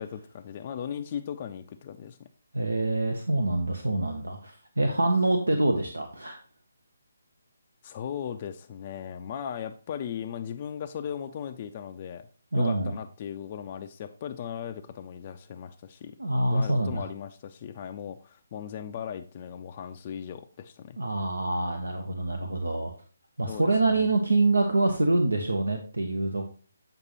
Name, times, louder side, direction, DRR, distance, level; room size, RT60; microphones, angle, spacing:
voice 1, 0.0-2.2 5.5-5.6 7.8-12.3 12.5-16.1 16.5-21.0 23.5-24.1, left 8 dB, 35° left, 7 dB, 0.4 m, -37 dB
voice 2, 2.5-6.4 12.5-12.9 16.2-17.1 21.0-22.9 23.4-26.4, right 2 dB, 80° right, 4 dB, 0.8 m, -25 dB
8.0 x 5.2 x 3.0 m, 0.39 s
figure-of-eight pair, 145°, 0 cm